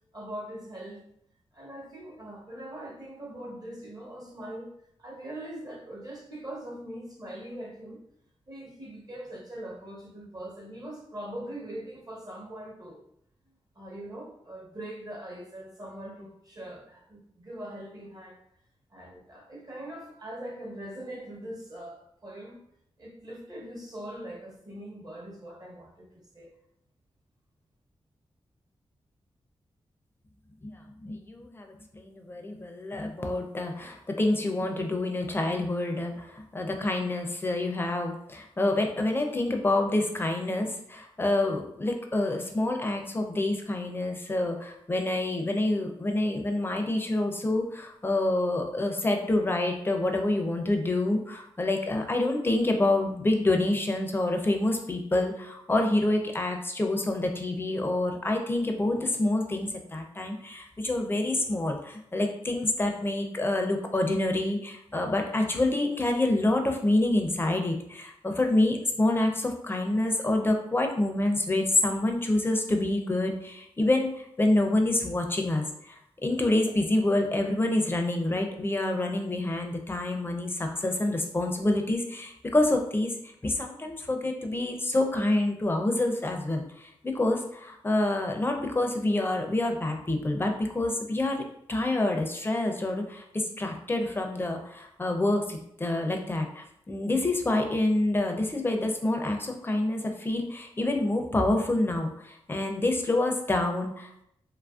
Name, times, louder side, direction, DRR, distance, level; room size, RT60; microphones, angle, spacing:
voice 1, 0.1-1.0 1.5-4.7 5.0-8.0 8.5-13.0 13.7-18.4 18.9-22.6 23.0-26.5, right 1 dB, 40° right, -2 dB, 0.9 m, -41 dB
voice 2, 30.6-91.4 91.7-104.2, left 2 dB, 20° left, 3 dB, 0.5 m, -27 dB
2.9 x 2.5 x 2.3 m, 0.75 s
cardioid pair, 70°, 10 cm